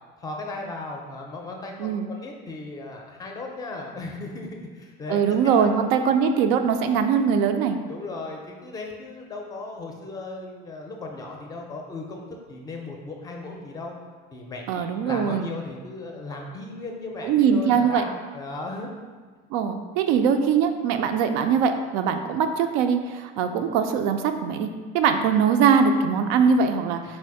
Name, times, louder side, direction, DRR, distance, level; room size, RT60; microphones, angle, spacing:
voice 1, 0.2-4.5 4.8-5.7 6.6-6.7 7.9-13.9 14.3-18.9, left 2 dB, 20° left, 1 dB, 0.4 m, -36 dB
voice 2, 5.1-7.8 14.7-15.5 17.2-18.0 19.5-24.7 24.9-27.2, right 6 dB, 90° right, 7 dB, 0.4 m, -22 dB
4.3 x 2.5 x 4.7 m, 1.5 s
cardioid pair, 170°, 20 cm